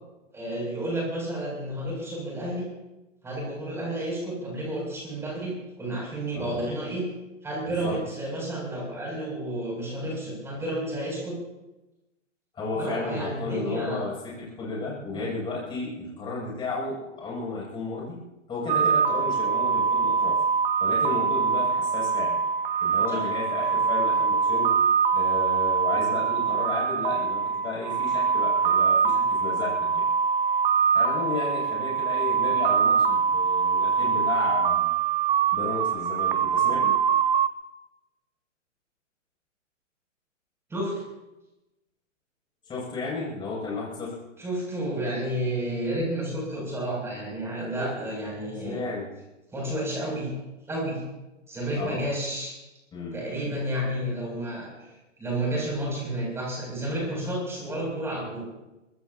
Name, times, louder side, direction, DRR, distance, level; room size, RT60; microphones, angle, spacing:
voice 1, 0.3-2.7 3.2-7.0 7.4-11.4 12.8-14.0 15.1-15.3 23.1-23.2 40.7-40.9 44.4-48.8 49.5-50.3 50.7-51.0 51.5-52.5 53.1-54.9 55.2-58.5, right 1 dB, 5° right, -3 dB, 7.5 m, -31 dB
voice 2, 6.4-6.7 7.7-8.0 12.5-18.2 18.5-20.4 20.8-22.4 22.8-24.8 25.1-30.0 30.9-34.9 35.5-37.0 42.7-44.2 47.8-47.9 48.6-49.1 51.7-52.0 52.9-53.2, left 3 dB, 10° left, -5 dB, 7.5 m, -33 dB
sound 1, 18.7-37.5, right 6 dB, 40° right, 1.0 m, -24 dB
24.5 x 20.0 x 3.0 m, 0.99 s
hypercardioid pair, 150°, 38 cm